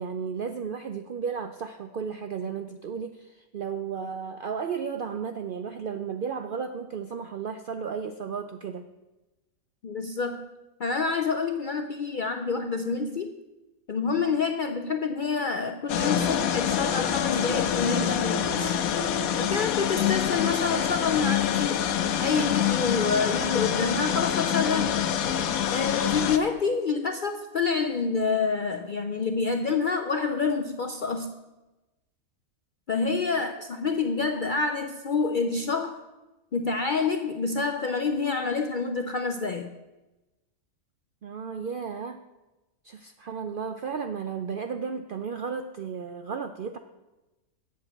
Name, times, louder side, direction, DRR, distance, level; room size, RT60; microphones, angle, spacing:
voice 1, 0.0-8.9 41.2-42.2 42.8-46.8, right 6 dB, 65° right, 8 dB, 0.5 m, -34 dB
voice 2, 9.8-10.4 10.8-13.3 13.9-18.8 19.4-21.8 22.2-25.0 25.7-31.3 32.9-36.0 36.5-39.7, left 4 dB, 60° left, 7 dB, 0.5 m, -27 dB
sound 1, 15.9-26.4, left 9 dB, 85° left, 1.1 m, -26 dB
7.9 x 6.8 x 8.4 m, 1.1 s
omnidirectional pair, 1.5 m